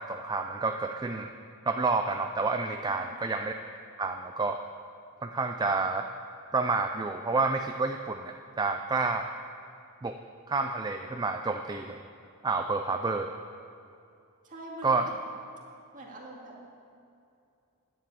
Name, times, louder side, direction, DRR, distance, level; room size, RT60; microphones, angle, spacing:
voice 1, 0.0-1.3 1.7-3.6 4.0-4.6 5.2-6.1 6.5-9.3 10.0-10.2 10.5-12.0 12.4-13.3 14.8-15.0, right 3 dB, 20° right, 5 dB, 0.4 m, -29 dB
voice 2, 2.9-3.2 14.4-15.2 15.9-16.6, right 1 dB, 35° right, -3 dB, 2.2 m, -44 dB
10.5 x 7.8 x 8.4 m, 2.6 s
head